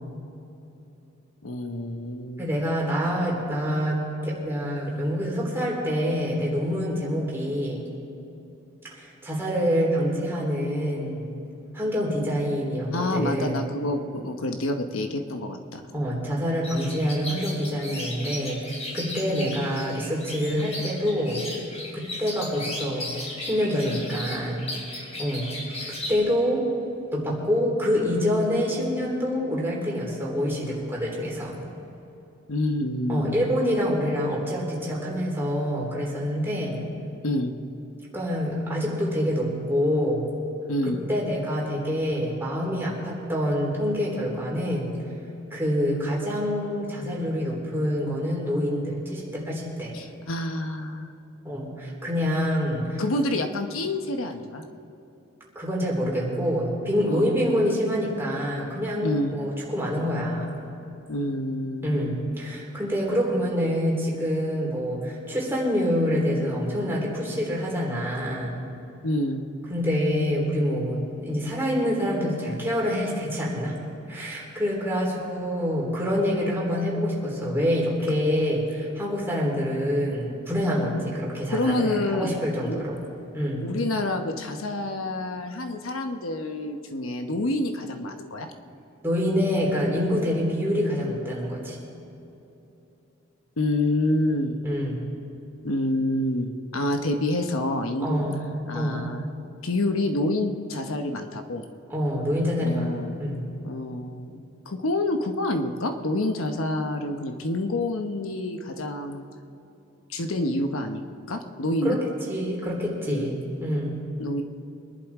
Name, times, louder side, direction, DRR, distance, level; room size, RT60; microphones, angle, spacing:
voice 1, 1.4-2.4 12.9-15.8 32.5-33.3 37.2-37.5 40.7-41.0 49.9-51.1 53.0-54.6 57.1-57.4 59.0-59.4 61.1-62.0 69.0-69.4 81.5-82.8 83.6-88.5 93.6-94.6 95.6-98.2 98.7-99.2 99.6-101.6 102.6-103.2 103.6-109.2 110.1-112.0 113.1-113.3 114.2-114.4, left 1 dB, 85° left, 6 dB, 1.1 m, -28 dB
voice 2, 2.4-7.9 8.9-11.2 11.7-13.6 15.9-21.5 21.9-23.1 23.4-24.6 25.2-25.5 25.9-26.7 27.1-31.6 33.1-36.8 38.1-40.3 40.8-44.9 45.5-49.9 51.4-53.0 55.6-60.6 61.8-68.6 69.7-73.8 74.1-83.0 83.3-83.6 89.0-91.8 94.6-95.0 98.0-98.5 98.7-99.1 101.9-103.4 111.8-112.0 112.3-114.0, equal, 10° right, -4 dB, 3.6 m, -26 dB
sound 1, 16.6-26.2, left 1 dB, 30° left, 3.7 m, -36 dB
24.5 x 11.5 x 3.7 m, 2.9 s
head